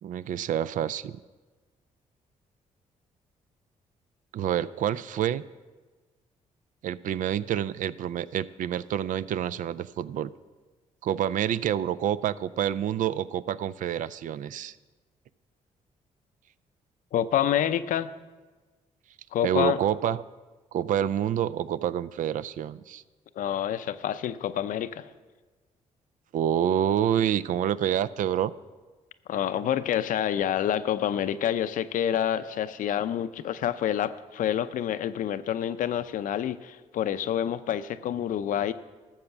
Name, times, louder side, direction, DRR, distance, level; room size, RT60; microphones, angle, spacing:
voice 1, 0.0-1.1 4.3-5.4 6.8-10.3 11.0-14.7 19.4-20.2 20.7-23.0 26.3-28.5, right 10 dB, 65° right, 17 dB, 0.4 m, -27 dB
voice 2, 17.1-18.1 19.3-19.8 23.4-25.1 29.3-38.7, left 10 dB, 70° left, 13 dB, 0.5 m, -28 dB
13.5 x 7.3 x 5.9 m, 1.3 s
supercardioid pair, 65°, 14 cm